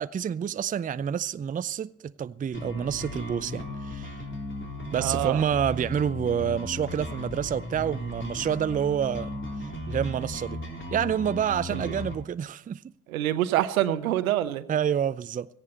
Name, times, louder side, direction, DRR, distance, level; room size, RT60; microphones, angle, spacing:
voice 1, 0.0-4.2 4.9-9.4 9.9-10.6 10.9-12.8 14.7-15.5, right 8 dB, 20° right, 0.5 m, -28 dB
sound 1, 2.5-12.1, left 1 dB, 25° left, 3.9 m, -36 dB
voice 2, 5.0-5.4 11.7-11.9 13.1-14.6, right 13 dB, 80° right, 1.0 m, -26 dB
18.0 x 14.5 x 4.2 m
figure-of-eight pair, 50°, 42 cm